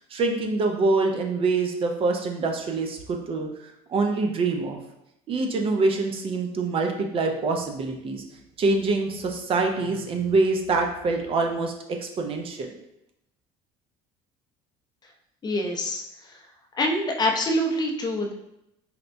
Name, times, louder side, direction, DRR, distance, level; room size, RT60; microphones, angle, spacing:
voice 1, 0.1-3.5 3.9-4.8 5.3-8.2 8.6-12.7, right 3 dB, 40° right, 3 dB, 0.5 m, -25 dB
voice 2, 15.4-16.0 16.7-18.3, left 1 dB, 30° left, 2 dB, 0.6 m, -25 dB
4.2 x 2.1 x 2.6 m, 0.82 s
supercardioid pair, 105°, 15 cm